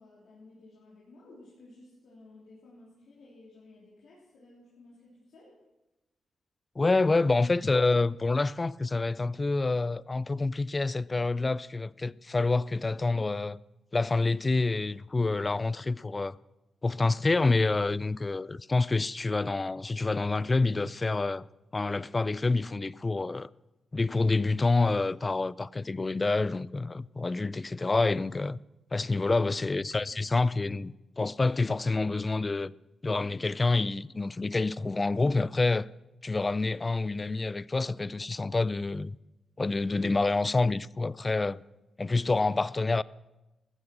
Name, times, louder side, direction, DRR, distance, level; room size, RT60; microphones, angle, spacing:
voice 1, 0.0-5.6 30.0-30.1, left 2 dB, 75° left, 3.5 m, -54 dB
voice 2, 6.8-13.6 13.9-16.4 16.8-21.5 21.7-23.5 23.9-28.6 28.9-32.7 33.0-35.9 36.2-39.2 39.6-41.6 42.0-43.0, left 3 dB, 25° left, 0.3 m, -27 dB
14.5 x 9.5 x 6.0 m
cardioid pair, 90°, 0 cm